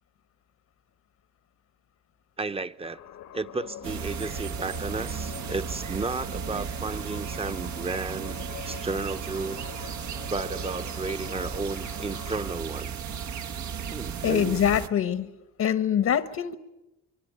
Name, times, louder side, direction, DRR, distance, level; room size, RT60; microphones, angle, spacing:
voice 1, 2.4-3.0 3.3-8.4 8.6-9.6 10.3-12.9 13.9-14.6, right 3 dB, 20° right, 0.9 m, -33 dB
sound 1, 2.8-12.6, left 11 dB, 85° left, 1.6 m, -45 dB
sound 2, 3.8-14.9, right 7 dB, 75° right, 1.4 m, -35 dB
voice 2, 14.2-15.3 15.6-16.5, left 9 dB, 65° left, 1.2 m, -24 dB
25.0 x 24.0 x 9.3 m
cardioid pair, 95°, 29 cm